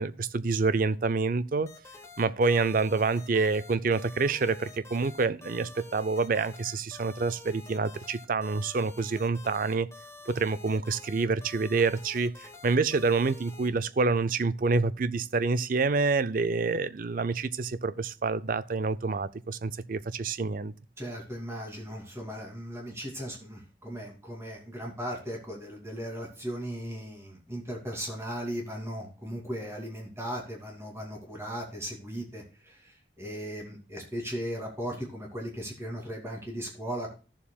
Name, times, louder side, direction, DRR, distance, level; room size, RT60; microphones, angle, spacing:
voice 1, 0.0-1.7 2.2-9.9 10.3-20.7, right 4 dB, 50° right, 0.5 m, -27 dB
sound 1, 1.7-13.7, left 3 dB, 15° left, 1.1 m, -48 dB
voice 2, 21.0-37.1, equal, 15° right, 2.6 m, -37 dB
14.5 x 7.2 x 2.3 m
head